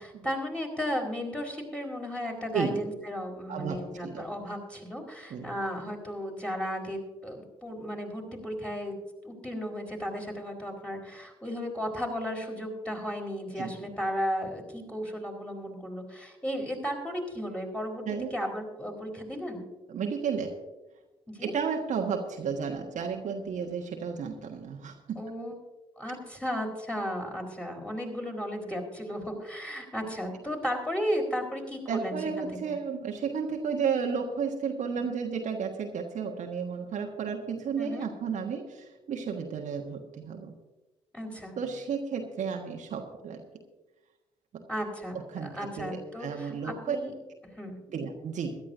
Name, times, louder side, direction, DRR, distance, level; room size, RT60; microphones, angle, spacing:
voice 1, 0.0-8.9 9.2-18.0 18.3-19.6 21.3-21.5 25.2-25.6 26.0-32.7 37.8-38.1 41.1-41.6 44.7-47.1 47.6-47.8, equal, 5° left, 1 dB, 4.2 m, -34 dB
voice 2, 3.5-4.2 5.3-5.5 13.6-13.9 18.1-18.3 19.9-20.5 21.4-25.2 31.9-40.5 41.6-43.4 44.5-44.6 45.3-47.0 47.9-48.6, right 6 dB, 50° right, 2 dB, 1.4 m, -33 dB
22.5 x 11.5 x 2.7 m, 1.1 s
figure-of-eight pair, 45°, 16 cm